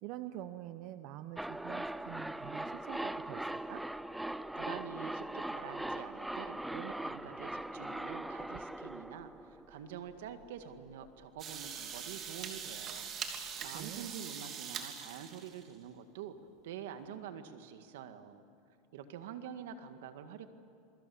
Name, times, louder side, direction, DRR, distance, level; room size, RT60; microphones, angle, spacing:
voice 1, 0.0-3.8 13.7-14.1, right 13 dB, 55° right, 10 dB, 0.9 m, -46 dB
sound 1, 1.4-10.2 10.4-10.5, right 1 dB, 5° right, 0.5 m, -40 dB
voice 2, 4.5-13.1 13.6-16.4 16.6-18.4 18.9-20.5, right 8 dB, 80° right, 8 dB, 1.9 m, -46 dB
sound 2, 11.4-15.7, right 7 dB, 35° right, 2.9 m, -42 dB
28.0 x 23.5 x 7.2 m, 2.6 s
supercardioid pair, 130°, 0 cm